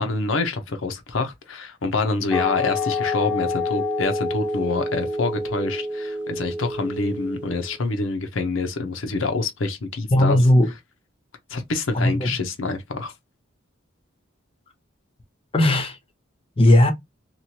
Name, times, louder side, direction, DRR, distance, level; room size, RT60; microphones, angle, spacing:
voice 1, 0.0-10.4 11.5-13.1, left 3 dB, 85° left, 0.7 m, -26 dB
sound 1, 2.3-7.7, left 2 dB, 5° right, 0.8 m, -27 dB
voice 2, 10.1-10.7 11.9-12.3 15.5-16.0 16.6-16.9, left 1 dB, 30° left, 0.7 m, -16 dB
3.0 x 2.4 x 2.8 m
head